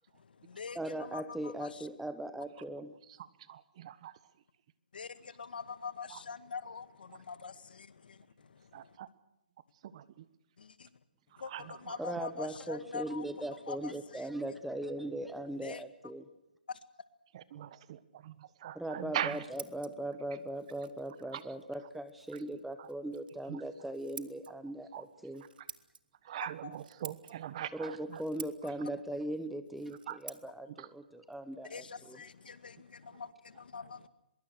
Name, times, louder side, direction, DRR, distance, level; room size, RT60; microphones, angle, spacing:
voice 1, 0.1-1.9 4.9-8.9 10.6-10.9 11.4-13.2 13.7-14.3 15.6-15.8 16.7-16.8 31.7-34.1, left 5 dB, 70° left, 13 dB, 1.9 m, -45 dB
voice 2, 0.7-2.9 12.0-16.3 18.7-25.4 27.7-32.2, right 1 dB, ahead, 11 dB, 1.0 m, -39 dB
voice 3, 3.0-4.2 6.1-6.2 7.1-7.2 8.7-9.1 9.8-10.3 11.3-12.2 17.3-19.4 21.3-21.5 22.3-22.4 22.8-22.9 23.5-23.6 24.9-25.0 25.6-25.7 26.2-28.2 28.8-28.9 30.1-30.2 30.7-30.9 33.1-33.2, right 11 dB, 40° right, 16 dB, 1.3 m, -42 dB
Scissors, 19.0-32.6, right 6 dB, 65° right, 1.6 m, -53 dB
24.0 x 22.5 x 6.4 m, 0.89 s
hypercardioid pair, 155°, 5 cm